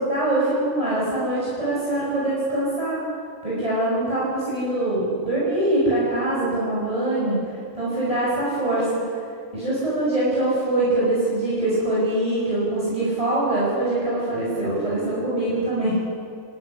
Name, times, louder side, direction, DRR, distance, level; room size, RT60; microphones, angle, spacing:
voice 1, 0.1-3.0 3.4-7.4 7.7-9.0 9.5-16.0, right 1 dB, 20° right, -8 dB, 6.1 m, -23 dB
27.0 x 14.5 x 9.8 m, 2.4 s
omnidirectional pair, 1.6 m